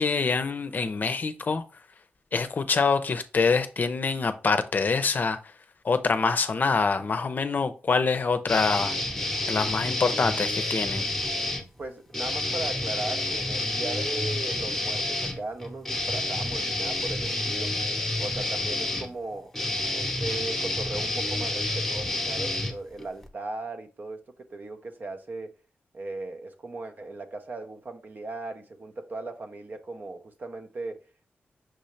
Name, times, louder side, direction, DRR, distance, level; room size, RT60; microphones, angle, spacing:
voice 1, 0.0-1.6 2.3-5.4 5.8-9.0 9.5-11.1, left 4 dB, 50° left, 0.5 m, -25 dB
sound 1, 8.5-11.6 12.1-23.3, left 2 dB, 5° left, 0.9 m, -29 dB
voice 2, 11.8-17.7 18.2-19.5 19.9-24.2 24.5-25.5 25.9-31.0, right 2 dB, 55° right, 0.7 m, -37 dB
6.1 x 2.7 x 3.2 m
cardioid pair, 75°, 4 cm